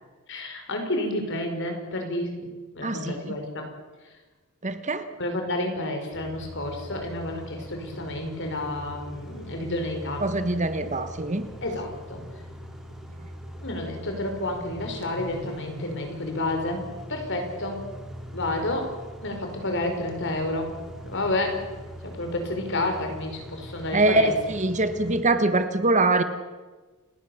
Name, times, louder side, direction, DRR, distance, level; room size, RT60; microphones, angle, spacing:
voice 1, 0.3-2.5 2.7-3.7 5.2-10.2 11.6-12.2 13.6-17.8 18.3-20.8 21.0-21.7 22.0-24.3, left 1 dB, 55° left, 4 dB, 5.3 m, -30 dB
voice 2, 2.8-3.3 4.6-5.1 10.2-11.5 23.9-26.2, right 2 dB, 35° right, 10 dB, 1.2 m, -23 dB
Car / Idling / Accelerating revving vroom, 6.1-25.2, equal, ahead, 4.5 m, -41 dB
29.5 x 18.0 x 7.2 m, 1.3 s
head